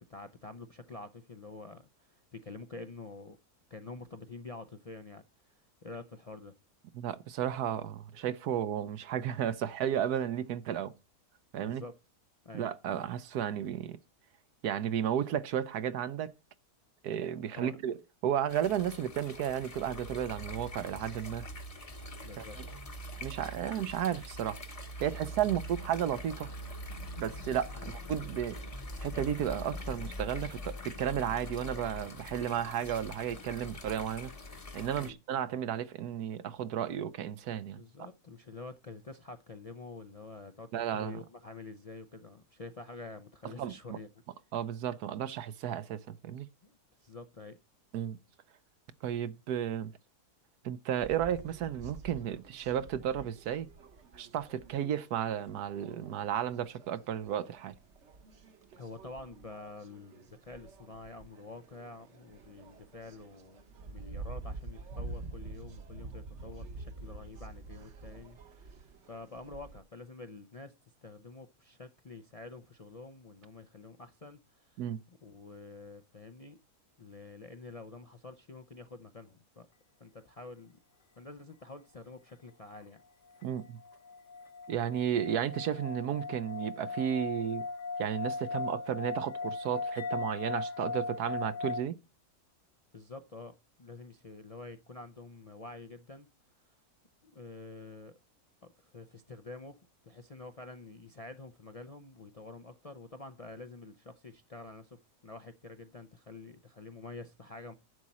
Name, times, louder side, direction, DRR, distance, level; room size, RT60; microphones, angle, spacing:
voice 1, 0.0-3.4 3.7-5.2 5.8-6.6 11.6-12.0 12.4-12.6 17.5-17.8 22.2-22.6 27.7-27.9 35.0-35.2 37.7-44.1 46.6-47.6 58.7-70.7 71.0-74.8 75.1-76.6 77.0-79.7 80.0-80.8 81.2-83.0 92.9-96.3 97.2-98.1 98.6-99.8 100.0-107.7, left 3 dB, 70° left, 0.3 m, -48 dB
voice 2, 6.9-10.9 11.5-11.8 12.5-14.0 14.6-16.3 17.0-18.0 18.2-21.5 22.4-22.5 23.2-24.6 25.0-26.5 27.2-28.6 29.0-34.3 34.7-37.8 40.7-41.2 43.6-44.0 44.5-46.5 47.9-48.2 49.0-49.9 50.6-53.7 54.1-57.7 74.8-75.0 83.4-83.8 84.7-87.7 88.0-92.0, right 9 dB, 80° right, 1.2 m, -33 dB
sound 1, 18.5-35.1, left 1 dB, 25° left, 0.9 m, -43 dB
sound 2, 51.0-69.8, right 3 dB, 50° right, 1.1 m, -48 dB
sound 3, 83.4-91.8, left 4 dB, 85° left, 1.6 m, -38 dB
11.0 x 7.4 x 4.2 m
omnidirectional pair, 1.7 m